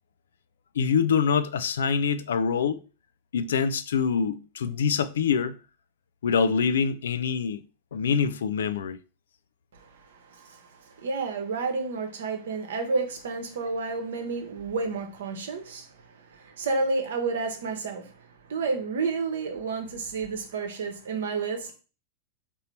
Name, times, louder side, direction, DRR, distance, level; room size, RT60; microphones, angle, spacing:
voice 1, 0.8-2.8 3.3-5.6 6.2-7.6 7.9-9.0, left 6 dB, 65° left, 0.3 m, -25 dB
voice 2, 9.7-21.7, right 4 dB, 60° right, 0.9 m, -31 dB
3.9 x 2.7 x 4.2 m
figure-of-eight pair, 90°, 0 cm